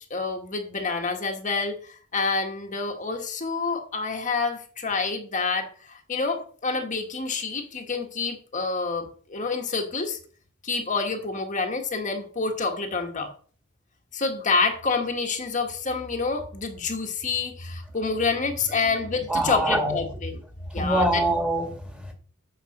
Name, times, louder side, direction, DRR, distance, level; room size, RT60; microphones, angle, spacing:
voice 1, 0.1-10.2 10.6-13.3 14.1-20.4 20.7-21.2, left 4 dB, 40° left, 1.4 m, -28 dB
voice 2, 19.3-20.0 20.7-22.1, right 1 dB, 5° right, 1.8 m, -24 dB
8.6 x 5.3 x 6.5 m
head